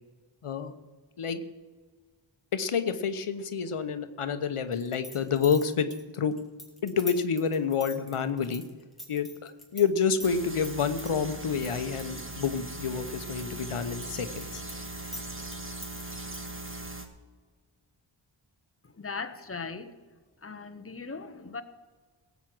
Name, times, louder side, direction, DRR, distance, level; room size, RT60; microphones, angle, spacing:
voice 1, 0.4-0.7 1.2-1.4 2.5-5.9 6.1-6.4 6.8-8.6 9.1-14.6, left 6 dB, 90° left, 10 dB, 0.9 m, -28 dB
sound 1, 4.7-9.8 10.1-11.1 11.6-13.4 13.7-16.5, left 1 dB, ahead, 3.4 m, -43 dB
sound 2, 10.2-17.1, right 2 dB, 25° right, 1.5 m, -40 dB
voice 2, 18.8-20.0 20.4-21.6, left 4 dB, 25° left, 9 dB, 0.9 m, -38 dB
17.5 x 8.2 x 6.0 m, 1.4 s
wide cardioid pair, 65°, 50 cm